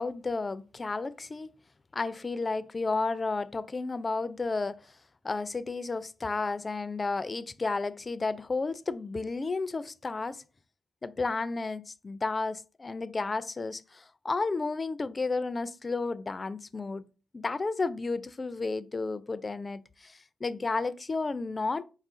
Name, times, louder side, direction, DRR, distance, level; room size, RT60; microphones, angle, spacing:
voice 1, 0.0-1.5 1.9-5.0 5.2-10.4 11.0-17.1 17.3-21.9, left 3 dB, 40° left, 0.3 m, -32 dB
4.0 x 2.5 x 3.6 m
supercardioid pair, 50°, 0 cm